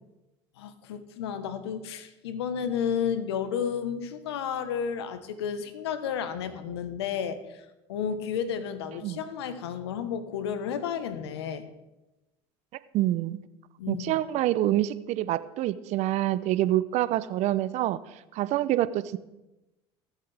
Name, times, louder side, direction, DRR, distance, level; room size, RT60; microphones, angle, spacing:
voice 1, 0.6-7.6 7.9-11.7 13.8-14.2, left 7 dB, 90° left, 11 dB, 1.1 m, -32 dB
voice 2, 12.9-13.4 13.9-18.0 18.3-19.2, right 14 dB, 60° right, 16 dB, 0.6 m, -26 dB
22.0 x 7.5 x 3.4 m, 0.99 s
supercardioid pair, 85°, 13 cm